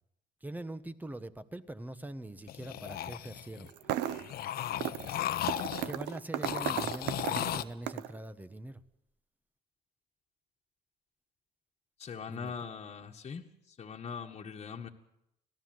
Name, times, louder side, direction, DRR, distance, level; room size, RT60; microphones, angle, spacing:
voice 1, 0.4-3.7 5.8-8.8 12.3-12.5, right 1 dB, 10° right, 12 dB, 1.3 m, -43 dB
sound 1, 2.5-3.7 4.0-6.1 6.4-7.6, left 11 dB, 65° left, 1.2 m, -35 dB
sound 2, 3.7-4.4 4.8-5.2 5.5-8.2, right 12 dB, 90° right, 1.0 m, -35 dB
voice 2, 12.0-14.9, left 6 dB, 40° left, 1 dB, 1.8 m, -42 dB
26.5 x 17.5 x 7.9 m, 0.82 s
cardioid pair, 110°, 17 cm